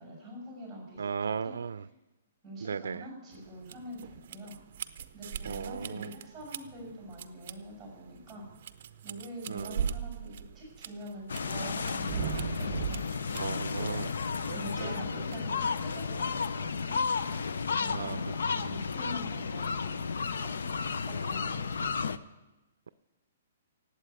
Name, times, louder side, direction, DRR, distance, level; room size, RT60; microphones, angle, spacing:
voice 1, 0.0-1.5 2.4-4.6 5.1-8.4 9.0-13.0 14.5-17.0 17.7-20.1 20.4-20.5 21.0-22.0, equal, ahead, -4 dB, 6.0 m, -45 dB
voice 2, 1.0-1.8 2.6-3.1 5.5-6.1 9.5-10.0 13.3-14.1 17.9-18.2 18.6-18.7, right 6 dB, 85° right, 16 dB, 0.4 m, -36 dB
sound 1, 3.3-16.2, right 8 dB, 40° right, 0.6 m, -40 dB
sound 2, 11.3-22.2, left 5 dB, 80° left, 0.7 m, -33 dB
17.5 x 8.3 x 8.2 m, 1.1 s
hypercardioid pair, 170°, 0 cm